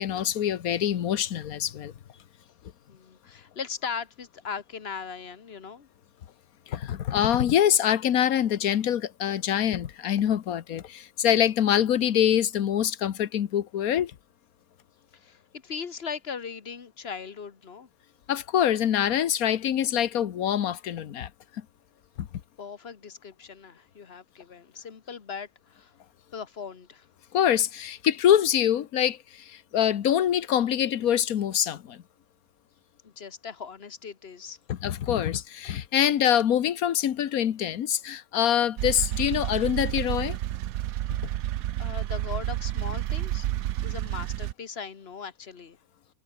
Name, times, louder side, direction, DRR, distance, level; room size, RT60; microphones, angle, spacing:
voice 1, 0.0-1.9 6.7-14.1 18.3-21.3 22.2-22.3 27.3-32.0 34.7-40.4, left 10 dB, 80° left, 1.4 m, -25 dB
voice 2, 2.9-5.9 15.1-17.9 22.6-25.9 26.3-27.1 33.0-34.6 41.8-43.5 43.8-45.8, left 6 dB, 45° left, 1.6 m, -39 dB
sound 1, 38.8-44.5, right 13 dB, 80° right, 1.1 m, -30 dB
omnidirectional pair, 1.5 m